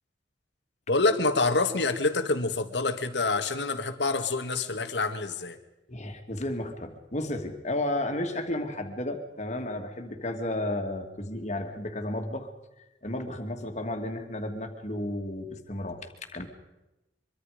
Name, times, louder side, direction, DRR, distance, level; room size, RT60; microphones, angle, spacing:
voice 1, 0.9-5.6, left 3 dB, 80° left, 8 dB, 1.9 m, -26 dB
voice 2, 5.9-12.5 13.0-16.5, left 1 dB, 40° left, 5 dB, 2.5 m, -33 dB
24.0 x 24.0 x 5.1 m, 0.98 s
head